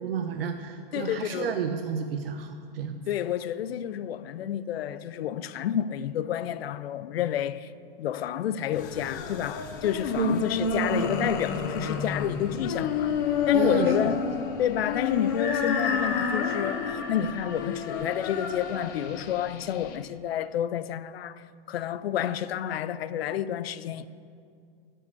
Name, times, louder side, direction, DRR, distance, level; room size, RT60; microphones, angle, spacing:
voice 1, 0.0-3.0 10.1-10.4 13.5-14.1, right 7 dB, 70° right, 0.7 m, -30 dB
voice 2, 0.9-1.6 3.1-7.7 8.0-13.1 13.5-14.2 14.6-24.1, left 10 dB, 85° left, 0.5 m, -30 dB
sound 1, 8.7-20.0, left 5 dB, 20° left, 0.4 m, -30 dB
sound 2, 15.4-18.2, left 4 dB, 70° left, 2.6 m, -33 dB
12.0 x 5.5 x 8.2 m
supercardioid pair, 170°, 30 cm